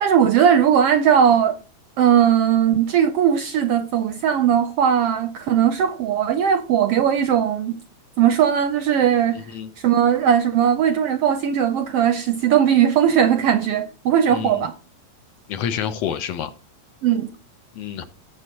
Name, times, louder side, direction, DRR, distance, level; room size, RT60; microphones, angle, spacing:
voice 1, 0.0-1.6 2.0-7.8 8.2-9.5 9.8-14.7 17.0-17.3, right 9 dB, 75° right, 1.4 m, -18 dB
voice 2, 9.3-9.7 14.3-14.7 15.5-16.5 17.8-18.0, left 8 dB, 70° left, 1.8 m, -28 dB
17.5 x 6.5 x 2.9 m
omnidirectional pair, 3.3 m